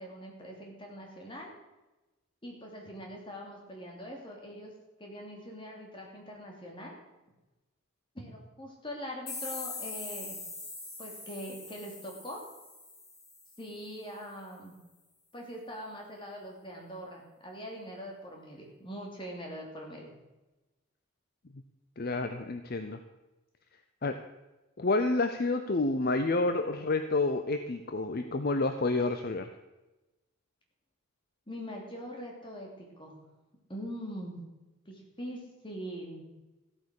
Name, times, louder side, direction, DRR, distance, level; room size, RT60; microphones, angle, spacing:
voice 1, 0.0-1.5 2.4-4.7 5.0-6.9 8.1-10.4 11.0-12.4 13.6-14.8 15.3-20.1 31.5-33.2 33.7-34.5 34.9-36.2, equal, 25° left, 0 dB, 2.8 m, -42 dB
sound 1, 9.3-13.9, left 3 dB, 90° left, 5.4 m, -42 dB
voice 2, 22.0-23.0 24.0-24.2 24.8-29.5, left 2 dB, 45° left, 8 dB, 0.6 m, -29 dB
14.5 x 8.4 x 6.5 m, 1.1 s
head